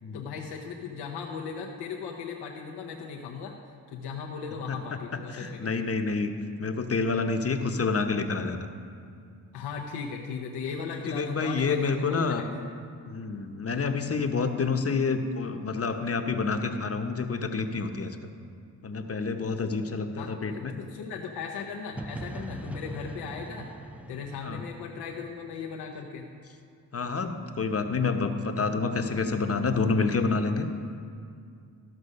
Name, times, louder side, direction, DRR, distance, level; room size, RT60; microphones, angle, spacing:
voice 1, 0.1-3.5 3.9-5.8 9.5-12.5 20.2-23.7 24.1-26.3, left 5 dB, 90° left, 0 dB, 0.8 m, -37 dB
voice 2, 5.3-6.3 6.6-8.7 11.1-12.5 13.0-18.3 18.8-20.7 21.9-22.1 24.4-24.6 26.9-30.7, left 4 dB, 40° left, 6 dB, 1.0 m, -28 dB
sound 1, 22.0-25.8, right 2 dB, 5° right, 0.5 m, -41 dB
13.5 x 6.0 x 5.4 m, 2.4 s
supercardioid pair, 50°, 38 cm